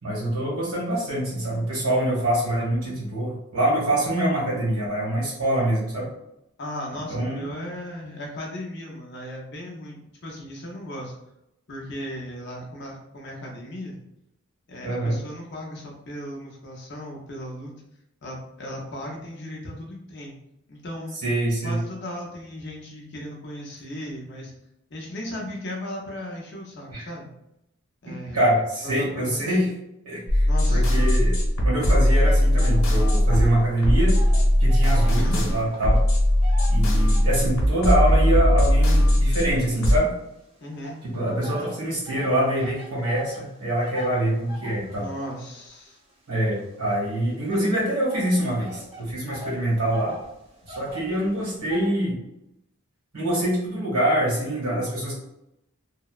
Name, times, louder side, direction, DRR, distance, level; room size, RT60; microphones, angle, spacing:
voice 1, 0.0-6.1 7.1-7.5 14.8-15.2 21.2-21.8 26.9-27.1 28.3-29.7 30.0-31.4 31.6-34.2 34.6-36.0 36.7-40.1 41.1-45.1 46.3-50.2 50.7-52.2 53.1-55.1, right 1 dB, 90° right, -6 dB, 1.3 m, -25 dB
voice 2, 6.6-11.1 11.7-14.0 14.7-17.7 18.2-20.3 20.7-21.2 21.6-24.5 24.9-27.3 28.0-28.5 28.8-29.6 30.5-31.1 35.2-35.4 40.6-41.0 44.9-46.0, left 1 dB, 50° left, -1 dB, 0.6 m, -36 dB
sound 1, 30.3-40.0, equal, 85° left, 1.0 m, -19 dB
sound 2, 32.1-33.6 33.9-37.6 38.1-40.2 40.8-51.9, left 1 dB, 25° right, 0.5 m, -43 dB
2.7 x 2.1 x 2.3 m, 0.82 s
head